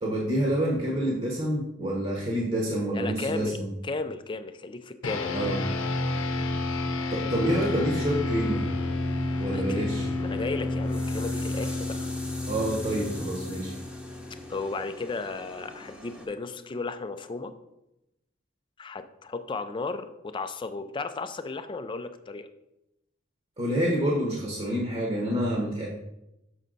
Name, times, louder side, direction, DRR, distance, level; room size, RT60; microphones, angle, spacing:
voice 1, 0.0-3.7 5.3-5.6 7.1-8.7 9.4-10.1 12.5-13.7 23.6-25.9, right 1 dB, 30° right, -3 dB, 1.0 m, -27 dB
voice 2, 2.9-5.5 9.5-9.9 10.2-12.1 14.5-17.6 18.8-22.5, left 3 dB, 25° left, 9 dB, 0.4 m, -35 dB
sound 1, 5.0-14.7, left 2 dB, 85° left, 0.7 m, -30 dB
sound 2, 7.4-16.3, left 1 dB, 5° right, 0.9 m, -44 dB
6.2 x 5.6 x 3.9 m, 0.89 s
head